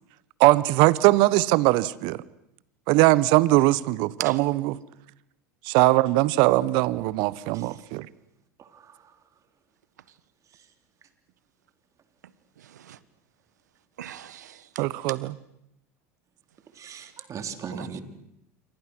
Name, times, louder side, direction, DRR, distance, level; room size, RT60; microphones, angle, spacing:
voice 1, 0.4-2.2 2.9-4.5 5.6-8.1 14.8-15.2, right 19 dB, 60° right, 1.1 m, -20 dB
voice 2, 8.6-9.0 16.8-18.0, right 6 dB, 35° right, 3.6 m, -38 dB
voice 3, 12.2-13.0 14.0-14.9 16.9-17.1 17.7-18.0, right 11 dB, 80° right, 1.4 m, -40 dB
28.0 x 24.5 x 6.3 m
hypercardioid pair, 85°, 9 cm